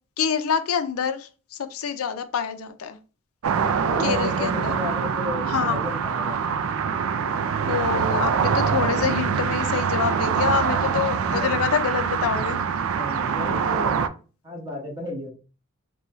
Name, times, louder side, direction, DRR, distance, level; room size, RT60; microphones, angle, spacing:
voice 1, 0.2-3.0 4.0-4.7 5.5-5.8 7.7-12.6, left 7 dB, 80° left, 10 dB, 0.5 m, -26 dB
sound 1, 3.4-14.1, right 6 dB, 70° right, 0.3 m, -24 dB
voice 2, 3.8-6.6 11.0-11.5 12.8-15.3, left 1 dB, 20° right, 0 dB, 1.0 m, -33 dB
3.9 x 2.3 x 3.0 m, 0.35 s
head